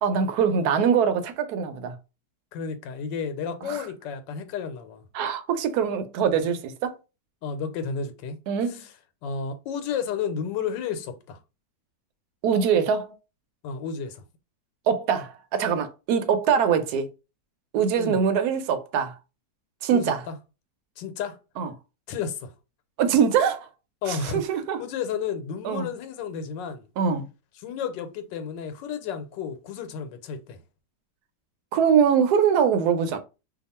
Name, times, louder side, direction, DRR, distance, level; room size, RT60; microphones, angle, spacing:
voice 1, 0.0-1.9 3.6-3.9 5.1-6.9 8.5-8.8 12.4-13.2 14.9-17.1 17.7-19.1 19.8-20.2 21.6-21.7 23.0-23.7 24.1-24.8 25.6-25.9 27.0-27.3 31.7-33.2, right 7 dB, 70° right, 1.0 m, -23 dB
voice 2, 2.5-5.0 7.4-8.4 8.7-8.9 9.2-11.4 13.6-14.2 18.0-18.2 19.9-20.4 21.0-21.4 22.1-22.5 24.0-24.4 24.8-26.9 27.6-30.6, left 6 dB, 90° left, 1.3 m, -32 dB
2.9 x 2.4 x 4.1 m
omnidirectional pair, 1.9 m